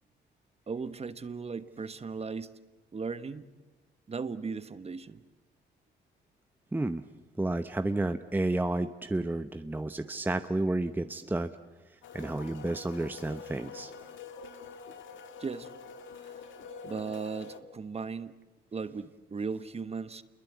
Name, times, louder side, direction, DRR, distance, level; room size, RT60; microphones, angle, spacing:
voice 1, 0.7-2.5 2.9-3.5 4.1-5.2 15.4-15.7 16.2-16.3 16.8-18.3 18.7-20.2, right 5 dB, 30° right, 12 dB, 1.3 m, -37 dB
voice 2, 6.7-7.0 7.4-11.5 12.1-13.9, right 2 dB, 10° right, 9 dB, 0.8 m, -31 dB
sound 1, 12.0-17.6, left 5 dB, 75° left, 1.9 m, -46 dB
28.5 x 22.0 x 8.3 m, 1.1 s
cardioid pair, 90°, 20 cm